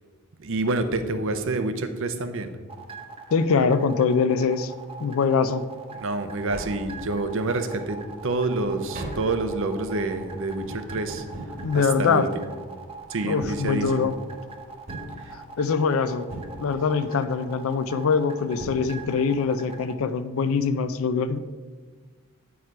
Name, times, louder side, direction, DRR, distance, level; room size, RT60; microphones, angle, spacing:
voice 1, 0.4-2.5 5.9-11.2 11.7-12.5 13.1-14.1 15.3-15.4, right 2 dB, 65° right, 9 dB, 0.7 m, -28 dB
sound 1, 2.7-19.9, right 4 dB, 25° right, 0.7 m, -42 dB
voice 2, 3.3-4.7 5.0-5.6 11.6-12.3 13.2-14.1 15.3-16.3 16.6-21.4, left 5 dB, 70° left, 12 dB, 0.4 m, -23 dB
Tap, 6.5-7.5 7.9-12.7 13.3-14.3 14.9-15.8 16.3-17.1 18.2-18.3 18.6-19.4 19.7-19.8, right 1 dB, 45° right, 1.4 m, -39 dB
8.7 x 4.8 x 4.7 m, 1.4 s
head